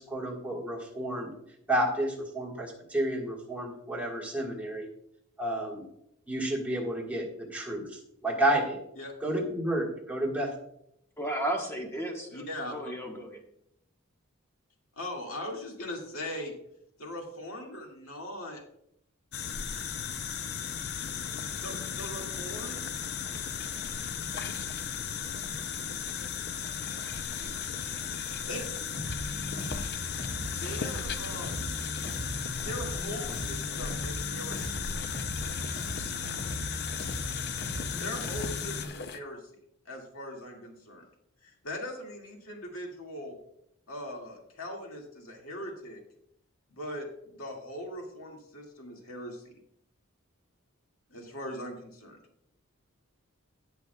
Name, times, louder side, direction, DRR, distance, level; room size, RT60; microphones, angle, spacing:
voice 1, 0.0-1.3 1.7-4.9 5.4-5.8 6.3-8.8 9.2-10.5, right 1 dB, 5° right, -2 dB, 1.6 m, -31 dB
voice 2, 11.2-12.4 12.7-13.3, right 1 dB, 10° left, 1 dB, 1.2 m, -33 dB
voice 3, 12.3-12.9 15.0-16.5 17.0-18.6 19.7-20.0 21.6-22.9 27.3-27.5 27.8-28.0 28.5-28.8 30.6-31.8 32.6-34.8 38.0-39.5 39.9-41.0 41.4-43.4 43.9-46.0 46.7-49.5 51.1-52.2, left 1 dB, 90° left, 0 dB, 2.1 m, -40 dB
sound 1, 19.3-39.2, left 7 dB, 50° left, 0.5 m, -35 dB
Bass guitar, 29.0-38.8, equal, 70° left, 2.4 m, -38 dB
18.0 x 6.2 x 2.3 m, 0.76 s
head